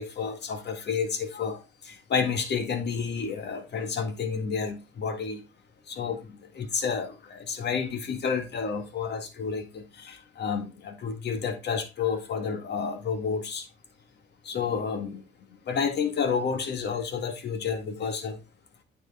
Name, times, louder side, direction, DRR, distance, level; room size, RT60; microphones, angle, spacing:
voice 1, 0.0-5.4 5.9-13.7 14.4-15.2 15.7-18.4, left 6 dB, 60° left, 1.9 m, -30 dB
9.2 x 4.9 x 3.6 m
cardioid pair, 90°, 20 cm